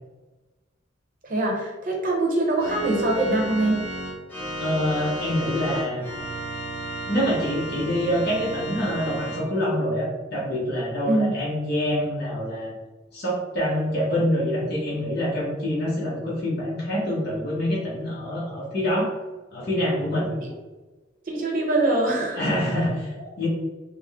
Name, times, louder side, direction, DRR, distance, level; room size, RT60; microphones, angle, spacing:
voice 1, 1.2-3.8 11.1-11.3 20.4-20.5 21.3-22.4, right 2 dB, 45° right, -1 dB, 0.8 m, -23 dB
Organ, 2.6-9.4, right 1 dB, 10° left, 0.8 m, -33 dB
voice 2, 4.6-6.0 7.1-12.7 13.1-19.1 19.5-20.3 22.4-23.5, equal, 55° left, -7 dB, 0.9 m, -26 dB
3.7 x 2.1 x 3.4 m, 1.2 s
head